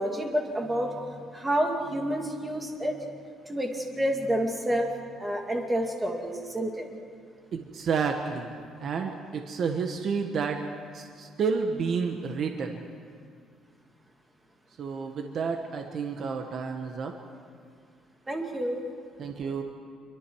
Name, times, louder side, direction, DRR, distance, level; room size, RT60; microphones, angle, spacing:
voice 1, 0.0-3.1 3.5-4.9 5.2-6.9 18.3-18.8, equal, 10° right, 2 dB, 2.3 m, -29 dB
voice 2, 7.5-8.5 8.8-10.6 10.9-12.8 14.8-17.1 19.2-19.6, right 5 dB, 45° right, 4 dB, 1.3 m, -30 dB
27.0 x 23.5 x 4.7 m, 2.1 s
cardioid pair, 150°, 0 cm